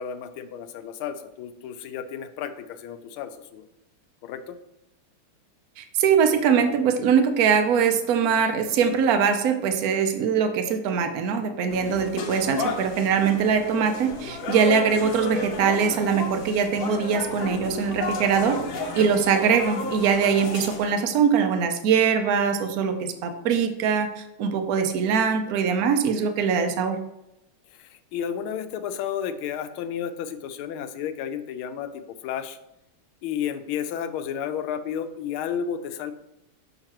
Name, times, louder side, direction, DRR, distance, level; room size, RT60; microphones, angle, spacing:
voice 1, 0.0-3.7 4.2-4.6 27.7-32.6 33.2-36.1, left 8 dB, 80° left, 10 dB, 1.4 m, -32 dB
voice 2, 5.8-18.6 18.9-27.0, right 6 dB, 75° right, 7 dB, 0.8 m, -22 dB
sound 1, 11.7-20.9, left 2 dB, 55° left, 0.9 m, -33 dB
6.5 x 6.0 x 2.9 m, 0.87 s
omnidirectional pair, 2.4 m